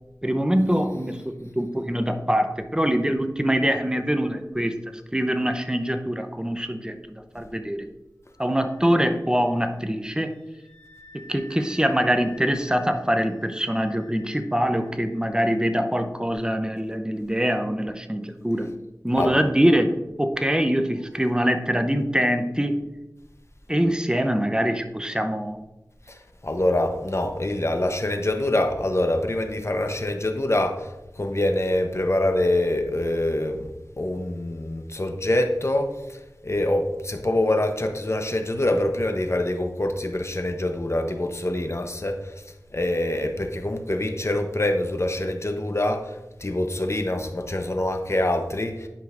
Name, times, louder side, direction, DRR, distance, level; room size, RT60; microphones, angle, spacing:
voice 1, 0.2-4.8 5.1-7.9 8.4-10.3 11.1-18.7 19.0-22.8 23.7-25.6, equal, 10° right, 7 dB, 0.6 m, -24 dB
Wind instrument woodwind instrument, 8.4-15.8, left 3 dB, 65° left, 1.5 m, -50 dB
voice 2, 26.1-33.7 34.0-36.2 36.4-42.3 42.7-46.1 46.4-48.9, left 1 dB, 45° left, 5 dB, 0.8 m, -25 dB
11.0 x 5.1 x 2.5 m, 1.0 s
wide cardioid pair, 45°, 7 cm